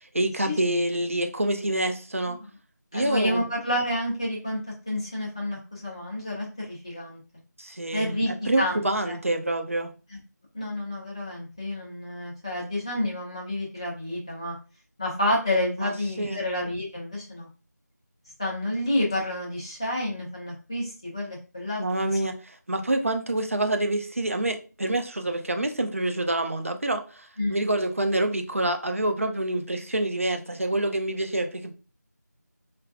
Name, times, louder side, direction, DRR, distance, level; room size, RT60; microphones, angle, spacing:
voice 1, 0.1-2.4 2.9-3.4 7.6-9.9 15.8-16.4 21.8-31.7, right 1 dB, 50° right, 5 dB, 0.7 m, -27 dB
voice 2, 2.9-4.6 4.9-7.2 7.9-8.8 9.1-9.2 10.5-14.5 15.0-17.5 18.4-22.3 27.4-27.6, left 1 dB, 15° left, -4 dB, 0.8 m, -29 dB
4.3 x 3.4 x 2.4 m, 0.34 s
figure-of-eight pair, 170°, 10 cm